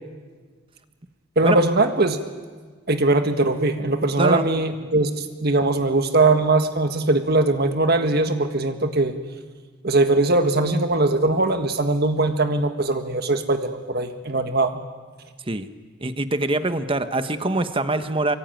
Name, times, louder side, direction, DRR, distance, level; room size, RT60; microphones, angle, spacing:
voice 1, 1.3-2.2 2.9-9.1 9.8-14.8, right 2 dB, 50° right, 7 dB, 1.6 m, -21 dB
voice 2, 16.0-18.4, right 2 dB, 25° right, 10 dB, 1.2 m, -23 dB
24.0 x 24.0 x 9.3 m, 1.5 s
head